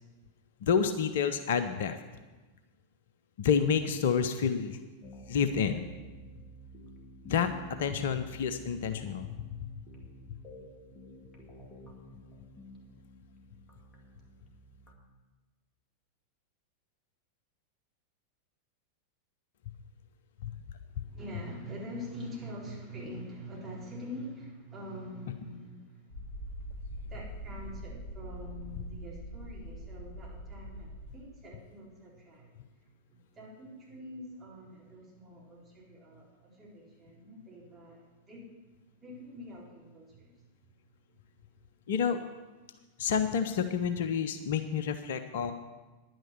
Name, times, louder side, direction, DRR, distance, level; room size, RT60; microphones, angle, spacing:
voice 1, 0.6-2.0 3.4-4.8 5.3-5.8 7.3-7.5 7.8-9.7 20.4-20.5 41.9-42.2 43.0-45.5, left 7 dB, 55° left, 10 dB, 0.6 m, -29 dB
sound 1, 5.0-14.9, equal, 20° left, 2.2 m, -50 dB
voice 2, 20.9-26.7 27.0-32.5 33.1-38.5 38.9-40.4, equal, 20° right, -6 dB, 4.2 m, -45 dB
sound 2, 26.1-31.1, equal, 75° right, 2.1 m, -43 dB
10.0 x 9.2 x 6.0 m, 1.2 s
figure-of-eight pair, 90°, 0 cm